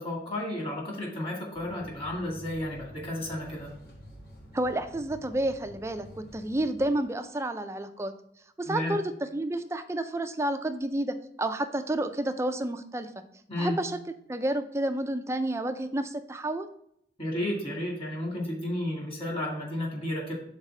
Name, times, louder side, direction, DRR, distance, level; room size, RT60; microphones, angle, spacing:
voice 1, 0.0-3.7 8.6-9.0 13.5-13.8 17.2-20.3, left 1 dB, 30° left, -2 dB, 1.9 m, -32 dB
sound 1, 1.5-6.9, equal, 60° left, 1.3 m, -49 dB
voice 2, 4.5-8.1 8.6-13.1 13.6-14.0 14.3-16.7, right 1 dB, 15° right, 8 dB, 0.4 m, -30 dB
5.5 x 4.0 x 5.9 m, 0.71 s
head